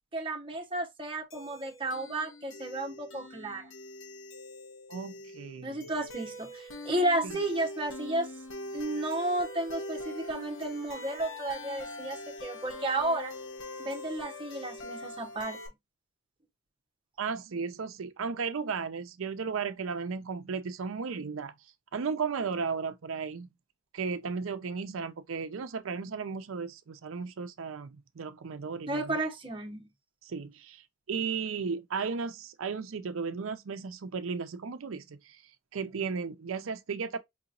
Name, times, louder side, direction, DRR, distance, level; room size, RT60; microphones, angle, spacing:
voice 1, 0.1-3.7 5.6-8.3 8.7-13.3 13.8-15.6 28.9-29.9, right 1 dB, 25° right, 0.9 m, -33 dB
sound 1, 1.3-15.7, left 1 dB, 80° left, 1.1 m, -43 dB
voice 2, 4.9-5.8 7.2-7.4 17.2-21.5 21.9-23.5 23.9-29.2 30.2-35.4 35.7-37.2, right 5 dB, 90° right, 0.5 m, -35 dB
4.8 x 2.9 x 2.4 m
head